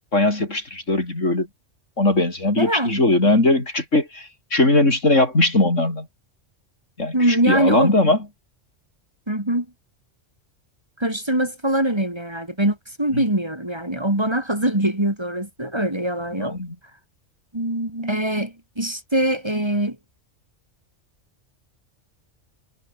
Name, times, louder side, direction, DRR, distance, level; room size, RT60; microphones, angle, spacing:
voice 1, 0.1-1.5 2.0-6.1 7.0-8.2 13.1-13.2 16.4-16.7, left 2 dB, 80° left, 5.9 m, -20 dB
voice 2, 2.6-3.0 7.1-7.9 9.3-9.7 11.0-16.6 17.5-20.0, right 1 dB, 20° right, 3.1 m, -23 dB
omnidirectional pair, 1.3 m